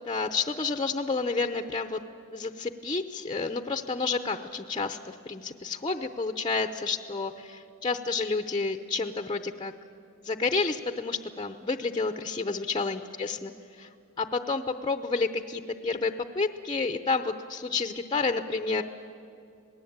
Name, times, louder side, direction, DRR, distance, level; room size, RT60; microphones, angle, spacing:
voice 1, 0.1-2.0 2.3-9.7 10.2-13.5 13.8-13.9 14.2-18.8, left 4 dB, 20° left, 7 dB, 0.7 m, -30 dB
27.0 x 19.0 x 8.8 m, 2.6 s
head